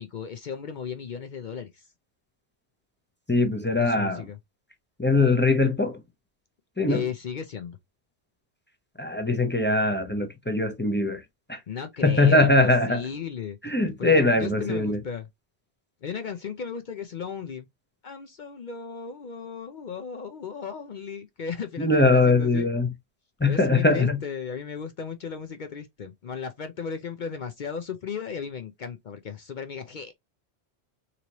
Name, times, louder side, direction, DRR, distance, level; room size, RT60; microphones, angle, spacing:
voice 1, 0.0-1.9 3.8-4.4 6.9-7.8 11.7-13.6 14.0-15.3 16.0-17.7 18.0-22.7 23.4-30.1, left 6 dB, 55° left, 0.6 m, -35 dB
voice 2, 3.3-4.2 5.0-6.0 6.8-7.0 9.0-11.2 11.5-11.6 12.0-13.0 13.6-15.0 21.8-22.9 23.4-24.2, left 2 dB, 15° left, 0.5 m, -21 dB
3.9 x 3.0 x 2.8 m
omnidirectional pair, 1.1 m